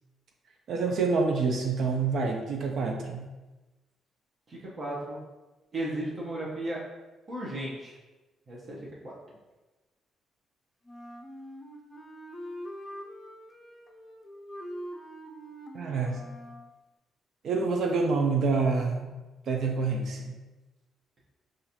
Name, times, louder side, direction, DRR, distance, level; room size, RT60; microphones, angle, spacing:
voice 1, 0.7-3.3 15.7-16.2 17.4-19.1 19.5-20.4, right 4 dB, 65° right, 2 dB, 0.5 m, -27 dB
voice 2, 4.5-5.2 5.7-6.8 7.3-8.0 8.5-9.4, right 1 dB, 45° right, -6 dB, 0.8 m, -35 dB
Wind instrument woodwind instrument, 10.8-16.7, equal, 20° left, 0.5 m, -43 dB
4.0 x 2.5 x 2.8 m, 1.1 s
cardioid pair, 90°, 0 cm